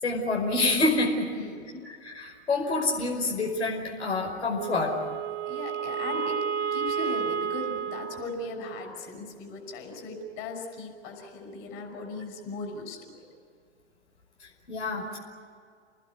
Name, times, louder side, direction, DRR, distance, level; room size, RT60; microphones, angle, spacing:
voice 1, 0.0-1.3 1.8-5.0 14.4-15.2, left 2 dB, 75° left, 0 dB, 5.3 m, -27 dB
voice 2, 1.3-1.9 5.5-13.2, left 3 dB, 40° left, 3 dB, 6.1 m, -38 dB
Wind instrument woodwind instrument, 4.5-9.0, right 7 dB, 50° right, 2.0 m, -32 dB
29.5 x 20.5 x 8.4 m, 2.2 s
figure-of-eight pair, 100°, 34 cm